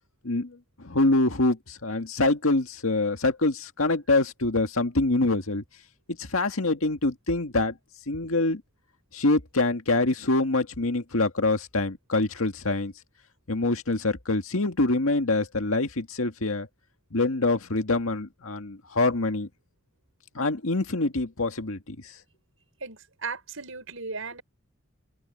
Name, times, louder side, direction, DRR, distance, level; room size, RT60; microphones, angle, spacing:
voice 1, 0.2-5.6 6.2-7.7 8.1-8.6 9.1-12.9 13.5-16.7 17.1-19.5 20.4-22.1, left 2 dB, 85° left, 1.9 m, -25 dB
voice 2, 22.8-24.4, right 4 dB, 75° right, 5.7 m, -36 dB
open air
head